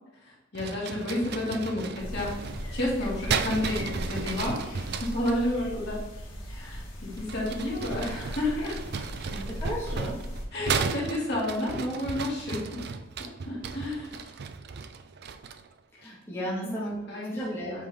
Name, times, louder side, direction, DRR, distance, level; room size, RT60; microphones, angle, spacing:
voice 1, 0.2-2.3 2.7-6.0 6.5-9.1 10.5-12.8 13.4-14.3 16.4-17.4 17.7-17.8, left 1 dB, 55° left, -5 dB, 1.9 m, -31 dB
sound 1, 0.5-5.4 7.1-15.7, right 5 dB, 55° right, 0.4 m, -35 dB
sound 2, 2.0-10.4, equal, 75° left, 2.1 m, -38 dB
voice 2, 9.3-10.2 15.9-17.9, equal, 15° left, -7 dB, 1.4 m, -35 dB
7.7 x 3.7 x 3.4 m, 1.0 s
head